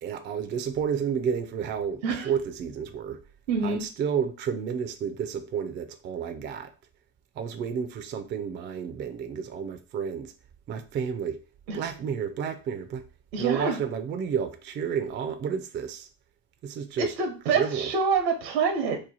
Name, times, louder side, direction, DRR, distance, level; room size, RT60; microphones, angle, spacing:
voice 1, 0.0-3.2 3.6-6.7 7.4-10.3 10.7-11.4 11.7-13.1 13.4-16.1 16.6-17.1 17.5-17.9, right 7 dB, 25° right, 0.4 m, -31 dB
voice 2, 3.5-3.8 11.7-11.8 13.3-13.8 17.0-19.0, right 5 dB, 85° right, 1.0 m, -26 dB
3.1 x 2.2 x 3.9 m
hypercardioid pair, 85°, 50 cm